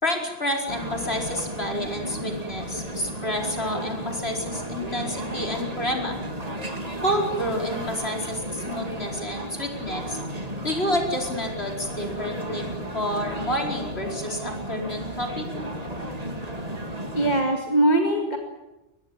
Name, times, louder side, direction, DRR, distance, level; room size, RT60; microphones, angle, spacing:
voice 1, 0.0-6.2 7.0-10.2 10.6-12.6 12.9-15.5, equal, 60° left, 1 dB, 5.1 m, -29 dB
sound 1, 0.7-17.4, right 1 dB, 30° right, 2.6 m, -34 dB
voice 2, 17.1-18.4, right 1 dB, 35° left, 3 dB, 2.2 m, -21 dB
23.0 x 20.0 x 9.0 m, 1.0 s
omnidirectional pair, 1.2 m